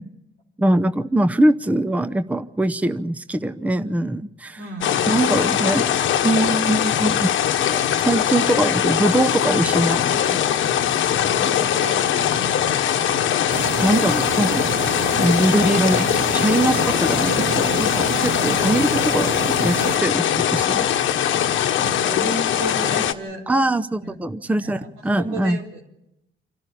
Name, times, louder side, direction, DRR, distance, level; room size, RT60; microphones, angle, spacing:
voice 1, 0.6-4.6 5.1-5.9 6.2-7.3 8.0-10.4 13.8-14.7 15.2-20.9 23.5-25.6, right 1 dB, 5° right, 11 dB, 0.7 m, -22 dB
voice 2, 4.6-5.0 11.2-13.3 18.7-19.2 21.8-23.4 24.0-24.2 24.4-24.9 25.2-25.9, right 2 dB, 90° right, 0 dB, 4.1 m, -34 dB
sound 1, 4.8-23.1, left 10 dB, 75° left, 1.2 m, -21 dB
sound 2, 13.5-20.0, right 8 dB, 50° right, 0.7 m, -29 dB
27.5 x 12.5 x 8.7 m, 0.87 s
cardioid pair, 90°, 20 cm